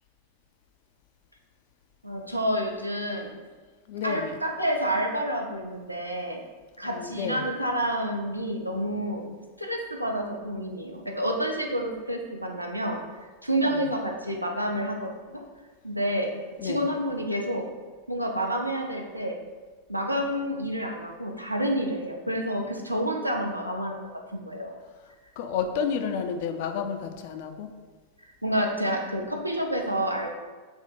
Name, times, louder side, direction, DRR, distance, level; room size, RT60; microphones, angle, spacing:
voice 1, 2.0-3.3 4.0-6.4 6.8-9.3 9.6-13.0 13.4-15.1 15.8-16.3 16.6-17.7 18.1-19.4 19.9-24.0 24.3-24.8 28.4-30.3, equal, 90° right, 1 dB, 0.4 m, -29 dB
voice 2, 3.9-4.4 6.8-7.5 13.7-13.9 16.6-16.9 25.4-27.7, left 6 dB, 50° left, 7 dB, 0.3 m, -31 dB
3.4 x 2.1 x 4.1 m, 1.3 s
figure-of-eight pair, 90°, 0 cm